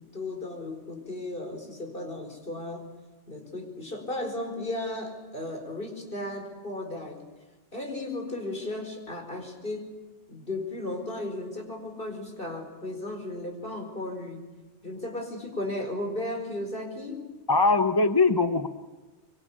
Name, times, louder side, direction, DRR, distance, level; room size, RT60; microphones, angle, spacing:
voice 1, 0.0-2.9 3.3-7.3 7.7-9.9 10.3-14.4 14.8-17.2, left 1 dB, 50° left, 3 dB, 4.9 m, -35 dB
voice 2, 17.5-18.7, left 3 dB, 20° left, 9 dB, 0.9 m, -21 dB
25.0 x 24.0 x 8.6 m, 1.2 s
omnidirectional pair, 1.2 m